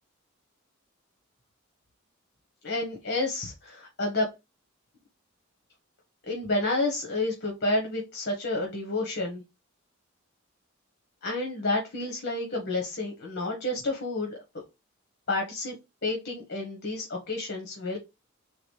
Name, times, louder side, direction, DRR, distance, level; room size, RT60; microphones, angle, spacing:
voice 1, 2.6-4.3 6.3-9.4 11.2-14.4 15.3-15.7 16.0-18.0, left 2 dB, 55° left, 2 dB, 1.1 m, -30 dB
3.9 x 3.4 x 3.2 m, 0.24 s
head